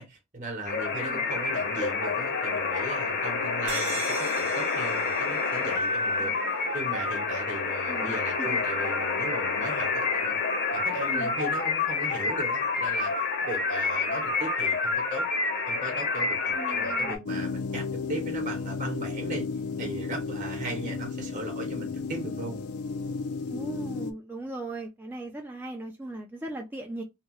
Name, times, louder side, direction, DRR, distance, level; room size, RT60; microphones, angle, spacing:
voice 1, 0.0-6.3 6.7-10.4 10.7-13.1 13.4-15.3 15.7-19.4 19.8-22.6, right 2 dB, 35° right, 0.8 m, -37 dB
sound 1, 0.7-17.2, left 4 dB, 50° left, 0.7 m, -28 dB
sound 2, 3.7-7.2, right 5 dB, 65° right, 0.7 m, -40 dB
voice 2, 6.2-6.5 7.9-8.6 11.0-11.3 16.5-17.4 23.5-27.0, right 2 dB, 10° right, 0.3 m, -39 dB
sound 3, 17.2-24.1, left 4 dB, 80° left, 0.4 m, -33 dB
2.8 x 2.3 x 2.9 m
head